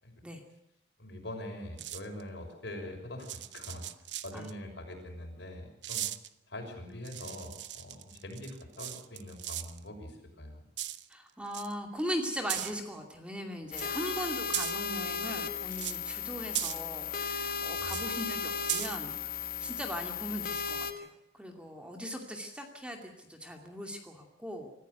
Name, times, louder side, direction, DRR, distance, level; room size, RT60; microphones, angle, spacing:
voice 1, 1.0-3.8 4.2-6.1 6.5-10.6 17.8-18.0, left 1 dB, 70° left, 3 dB, 6.4 m, -43 dB
sound 1, 1.8-2.2 3.2-4.5 5.8-6.3 7.0-9.8 10.8-11.1 11.5-11.7 12.5-12.7 13.7-13.9 14.5-14.9 15.7-16.1 16.5-16.8 17.8-18.1 18.7-19.0, right 13 dB, 70° right, 0.9 m, -37 dB
voice 2, 11.1-24.7, equal, 5° right, 3 dB, 2.5 m, -39 dB
sound 2, 13.7-20.9, left 6 dB, 50° left, 1.6 m, -35 dB
25.5 x 14.5 x 8.1 m, 0.87 s
head